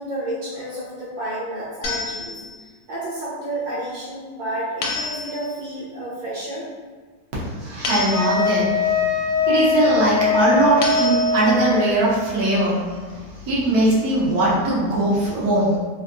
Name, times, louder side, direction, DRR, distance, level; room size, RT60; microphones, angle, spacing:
voice 1, 0.0-2.4 2.9-6.7 15.3-15.7, right 1 dB, 80° right, -8 dB, 1.5 m, -31 dB
sound 1, 1.8-2.8 4.8-5.7 7.8-8.7 10.8-11.7, left 3 dB, 80° left, 1.3 m, -29 dB
voice 2, 7.4-15.8, right 1 dB, 60° right, -7 dB, 1.2 m, -21 dB
Wind instrument woodwind instrument, 8.1-12.0, left 4 dB, 40° right, 0.9 m, -21 dB
3.4 x 2.2 x 2.5 m, 1.4 s
omnidirectional pair, 2.1 m